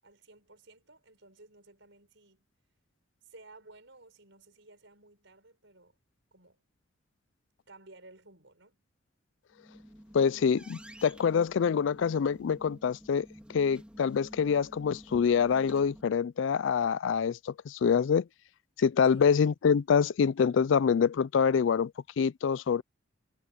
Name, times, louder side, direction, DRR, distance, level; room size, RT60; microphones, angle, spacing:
voice 1, 0.0-2.5 3.2-6.0 6.3-6.6 7.7-8.8 19.1-19.3, right 2 dB, 65° right, 6.7 m, -56 dB
sound 1, 9.5-16.0, equal, 5° right, 2.9 m, -51 dB
voice 2, 10.1-18.3 18.8-21.9 22.2-22.8, left 6 dB, 65° left, 0.3 m, -26 dB
head